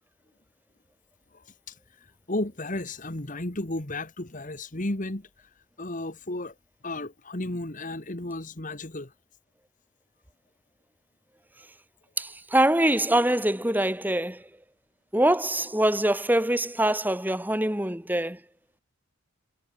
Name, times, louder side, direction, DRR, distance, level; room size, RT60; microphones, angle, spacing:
voice 1, 1.3-5.5 5.8-6.5 6.8-9.1, left 2 dB, 40° left, 1.9 m, -34 dB
voice 2, 12.2-14.4 15.1-18.4, right 1 dB, 10° right, 2.4 m, -24 dB
head